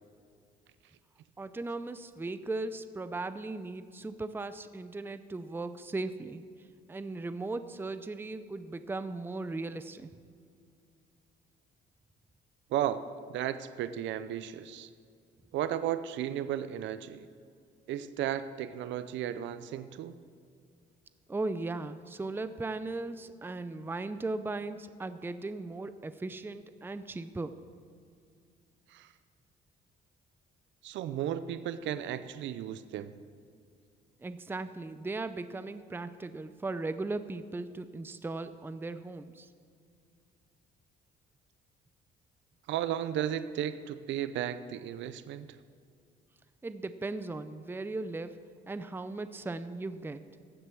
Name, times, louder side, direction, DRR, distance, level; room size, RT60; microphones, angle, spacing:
voice 1, 1.4-6.4 6.9-10.1 21.3-27.6 34.2-39.5 46.6-48.4 48.7-50.2, right 2 dB, 10° right, 12 dB, 0.5 m, -37 dB
voice 2, 12.7-13.0 13.3-14.9 15.5-17.2 17.9-20.2 28.9-29.1 30.8-33.1 42.7-45.5, right 10 dB, 75° right, 12 dB, 0.6 m, -34 dB
15.0 x 7.8 x 6.1 m, 2.3 s
cardioid pair, 90°, 19 cm